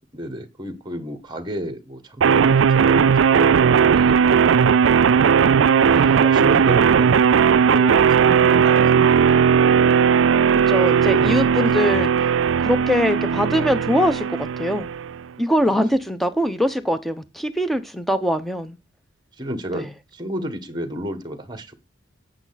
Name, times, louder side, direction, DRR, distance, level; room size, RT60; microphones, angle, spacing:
voice 1, 0.1-4.7 5.3-5.6 6.1-9.6 10.5-11.5 15.6-15.8 19.4-21.7, equal, 20° right, 1.5 m, -32 dB
sound 1, 2.2-15.2, right 6 dB, 85° right, 0.4 m, -17 dB
voice 2, 5.9-6.2 10.7-12.1 12.6-14.9 15.4-18.8 19.7-19.9, equal, ahead, 0.9 m, -22 dB
8.8 x 8.7 x 4.1 m
head